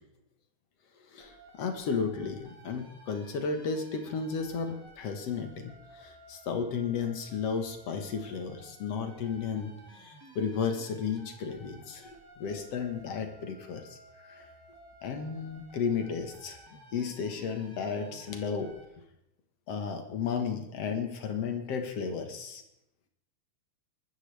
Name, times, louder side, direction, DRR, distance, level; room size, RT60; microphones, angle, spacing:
voice 1, 1.1-14.0 14.2-14.5 15.0-16.6 16.9-18.7 19.7-22.6, left 6 dB, 60° left, 5 dB, 2.5 m, -33 dB
sound 1, 1.2-18.8, right 1 dB, 10° right, 1.9 m, -54 dB
23.0 x 13.5 x 3.4 m, 0.80 s
omnidirectional pair, 3.4 m